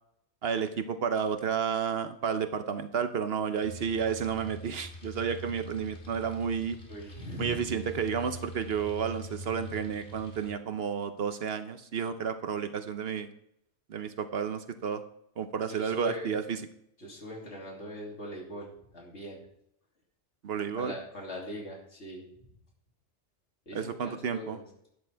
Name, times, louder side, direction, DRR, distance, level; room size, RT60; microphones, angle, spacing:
voice 1, 0.4-6.8 7.4-13.3 13.9-15.0 15.4-16.6 20.4-20.9 23.7-24.6, right 7 dB, 60° right, 10 dB, 0.9 m, -31 dB
sound 1, 3.6-10.5, right 2 dB, 45° left, 2.5 m, -44 dB
voice 2, 6.9-7.7 15.7-16.4 17.0-19.4 20.8-22.3 23.7-24.6, equal, 70° left, -2 dB, 3.1 m, -41 dB
11.5 x 10.0 x 3.4 m, 0.74 s
omnidirectional pair, 1.2 m